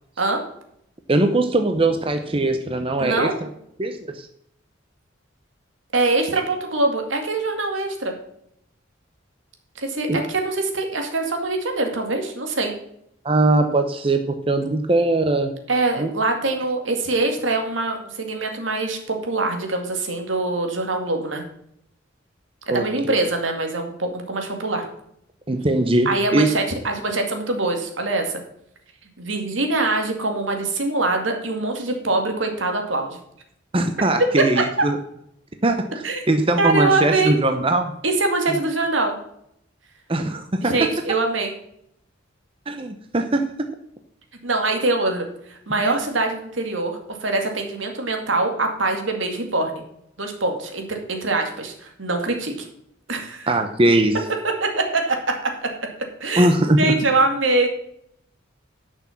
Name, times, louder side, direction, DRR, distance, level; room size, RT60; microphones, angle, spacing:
voice 1, 1.1-3.5 3.8-4.3 10.1-10.2 13.2-15.5 16.0-16.1 22.7-23.2 25.5-26.5 33.7-35.0 35.6-37.9 40.1-40.7 42.7-43.5 45.8-46.0 53.5-54.2 56.4-56.8, right 2 dB, 30° right, 6 dB, 0.8 m, -21 dB
voice 2, 3.0-3.3 5.9-8.1 9.8-12.7 15.7-21.4 22.7-24.8 26.1-28.4 29.2-33.2 34.2-34.6 36.0-36.3 36.6-37.4 38.0-39.2 40.6-41.5 44.4-49.8 50.2-52.7 53.1-53.5 54.4-55.2 55.4-55.7 56.2-56.5 56.8-57.7, right 2 dB, 85° right, 4 dB, 2.3 m, -23 dB
11.0 x 6.2 x 5.9 m, 0.73 s
head